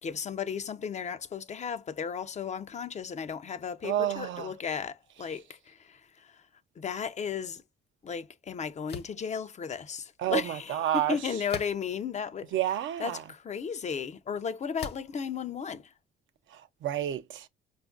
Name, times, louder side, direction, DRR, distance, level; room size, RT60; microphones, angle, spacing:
voice 1, 0.0-6.4 6.8-7.6 8.0-12.5 13.0-15.9, left 6 dB, 35° left, 0.4 m, -35 dB
voice 2, 3.8-4.5 10.2-11.2 12.5-13.2 16.5-17.5, right 12 dB, 75° right, 0.6 m, -30 dB
sound 1, 8.9-9.2 11.5-12.0 12.7-12.8 14.8-15.2, left 6 dB, 55° left, 0.9 m, -40 dB
4.9 x 2.4 x 2.3 m
cardioid pair, 90°, 20 cm